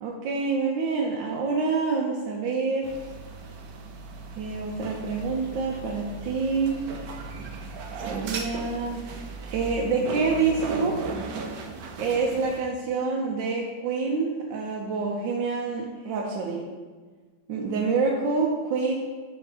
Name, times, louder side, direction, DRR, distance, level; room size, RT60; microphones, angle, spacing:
voice 1, 0.0-2.9 4.3-6.8 8.1-9.0 9.4-11.0 12.0-16.6 17.5-18.9, right 4 dB, 85° right, 0 dB, 1.4 m, -27 dB
sound 1, 2.8-12.6, right 4 dB, 65° right, 1.0 m, -36 dB
6.9 x 3.6 x 4.9 m, 1.4 s
omnidirectional pair, 2.0 m